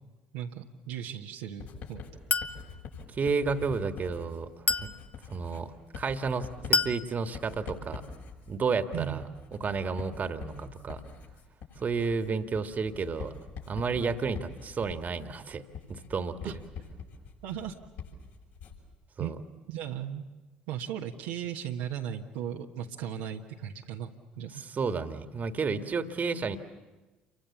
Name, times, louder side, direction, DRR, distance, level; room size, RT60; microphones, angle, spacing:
voice 1, 0.3-2.0 8.9-9.2 16.4-16.6 17.4-17.7 19.2-19.3 19.7-20.2 20.7-24.6, right 10 dB, 75° right, 0 dB, 1.3 m, -36 dB
Writing, 1.6-18.9, left 5 dB, 70° left, 6.3 m, -45 dB
Chink clink, 2.3-2.6 4.7-5.0 6.7-7.0, left 4 dB, 35° left, 1.0 m, -27 dB
voice 2, 3.1-4.5 5.3-8.0 8.5-9.2 9.6-11.0 11.8-13.3 13.7-15.6 15.9-16.5 19.2-19.4 24.5-26.6, right 5 dB, 40° right, 8 dB, 1.8 m, -31 dB
28.5 x 24.0 x 7.3 m, 1.2 s
hypercardioid pair, 60°, 4 cm